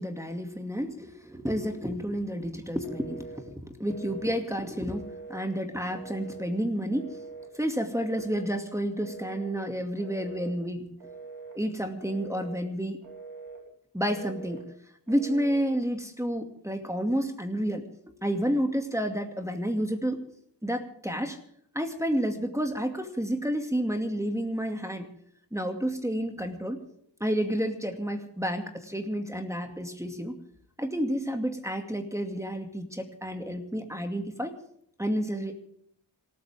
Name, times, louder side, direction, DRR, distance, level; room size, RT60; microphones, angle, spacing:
voice 1, 0.0-7.2 7.5-10.9 11.5-13.0 13.9-14.6 15.1-17.9 18.2-20.2 20.6-21.4 21.7-25.1 25.5-26.8 27.2-30.4 30.8-34.5 35.0-35.6, equal, 5° right, 3 dB, 2.4 m, -30 dB
Telephone, 2.8-3.4 3.9-4.4 4.9-5.5 5.9-6.5 6.9-7.5 7.9-8.5 9.0-9.5 10.0-10.6 11.0-11.6 12.0-12.6 13.0-13.6 14.1-14.6 15.1-15.7, right 4 dB, 90° right, 4.7 m, -43 dB
27.0 x 14.0 x 3.6 m, 0.66 s
wide cardioid pair, 55°, 43 cm